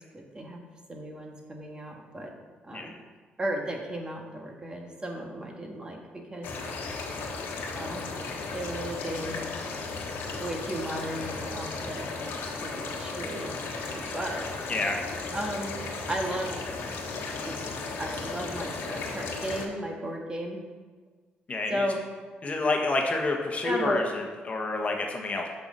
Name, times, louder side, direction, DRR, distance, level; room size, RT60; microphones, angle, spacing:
voice 1, 0.1-0.6 0.9-2.3 2.7-2.9 3.4-6.0 6.3-6.5 7.7-8.1 8.5-9.4 10.4-12.1 12.6-14.4 15.3-15.7 16.1-16.5 17.4-17.5 18.0-20.6 21.7-22.0 23.6-24.0, right 1 dB, 25° right, 1 dB, 1.5 m, -34 dB
sound 1, 6.4-19.7, left 4 dB, 80° left, 1.3 m, -35 dB
voice 2, 21.5-21.9 22.4-25.5, left 3 dB, 35° left, 2 dB, 1.3 m, -28 dB
6.9 x 5.8 x 6.7 m, 1.4 s
cardioid pair, 85°, 4 cm